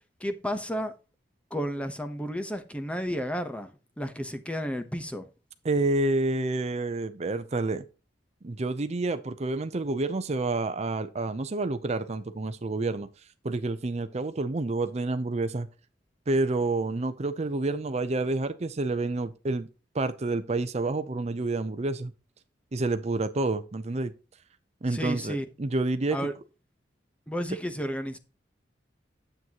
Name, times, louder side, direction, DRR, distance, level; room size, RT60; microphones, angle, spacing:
voice 1, 0.2-0.9 1.5-3.7 4.0-5.3 24.9-25.4 26.1-26.3 27.3-28.2, equal, 5° left, 0.9 m, -32 dB
voice 2, 5.6-7.8 8.4-13.1 13.4-15.7 16.3-19.7 19.9-22.1 22.7-24.1 24.8-26.2, right 2 dB, 40° right, 0.6 m, -28 dB
9.7 x 7.9 x 2.9 m
head